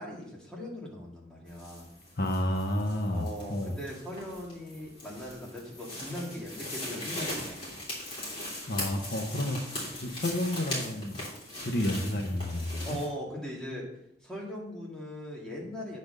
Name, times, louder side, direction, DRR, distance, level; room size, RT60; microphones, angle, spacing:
voice 1, 0.0-1.9 3.1-7.6 12.8-13.9 14.2-16.0, equal, 5° left, -5 dB, 2.1 m, -39 dB
sound 1, 1.5-13.1, left 1 dB, 30° left, 3.3 m, -40 dB
voice 2, 2.2-3.7 8.7-9.6 9.9-11.2 11.6-13.0, left 1 dB, 55° left, 3 dB, 0.8 m, -30 dB
8.6 x 4.3 x 6.5 m, 0.76 s
head